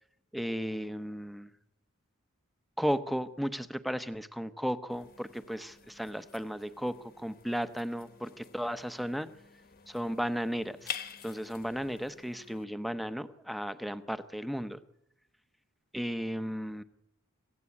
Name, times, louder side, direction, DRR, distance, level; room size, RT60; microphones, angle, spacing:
voice 1, 0.3-1.5 2.8-9.3 9.9-10.9 11.2-14.8 15.9-16.8, equal, ahead, 12 dB, 1.0 m, -34 dB
sound 1, 4.9-12.6, left 8 dB, 45° left, 1.4 m, -48 dB
26.5 x 15.0 x 8.6 m, 0.83 s
head